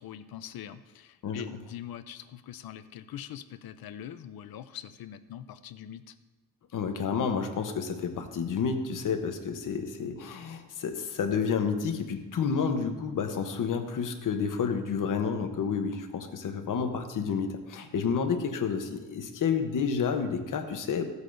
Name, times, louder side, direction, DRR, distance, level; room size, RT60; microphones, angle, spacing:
voice 1, 0.0-6.2, left 10 dB, 75° left, 12 dB, 0.6 m, -43 dB
voice 2, 6.7-21.0, left 6 dB, 60° left, 6 dB, 1.0 m, -30 dB
15.0 x 8.1 x 2.7 m, 1.2 s
wide cardioid pair, 170°, 36 cm